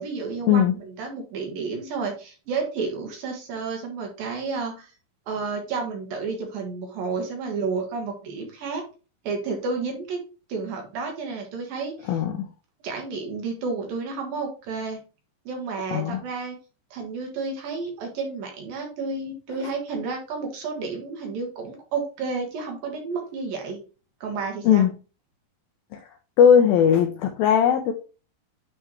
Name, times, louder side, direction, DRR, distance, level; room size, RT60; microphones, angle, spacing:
voice 1, 0.0-4.9 5.3-8.8 9.2-10.2 10.5-12.2 12.8-15.0 15.5-16.6 16.9-23.8 24.2-24.9, right 4 dB, 65° right, 2 dB, 2.8 m, -31 dB
voice 2, 12.1-12.5 15.9-16.2 24.7-24.9 25.9-26.0 26.4-27.9, left 8 dB, 85° left, 4 dB, 2.1 m, -18 dB
9.5 x 3.6 x 3.1 m, 0.34 s
omnidirectional pair, 4.8 m